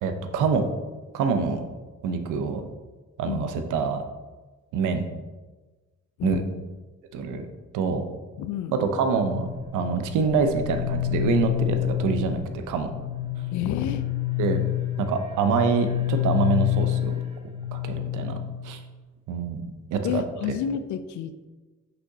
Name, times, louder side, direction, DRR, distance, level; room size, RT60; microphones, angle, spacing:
voice 1, 0.0-0.7 1.1-1.6 2.0-2.6 3.2-4.0 4.7-5.1 6.2-6.4 7.1-7.4 7.7-8.1 8.7-9.5 9.7-12.9 14.4-14.6 15.0-17.2 17.7-18.4 18.6-18.8 19.3-20.2, right 5 dB, 85° right, 7 dB, 0.7 m, -25 dB
voice 2, 8.4-8.7 13.5-14.1 20.0-21.4, left 9 dB, 75° left, 11 dB, 0.5 m, -29 dB
sound 1, 9.1-18.9, left 15 dB, 20° right, 1.7 m, -28 dB
6.1 x 5.6 x 2.7 m, 1.2 s
cardioid pair, 90°, 30 cm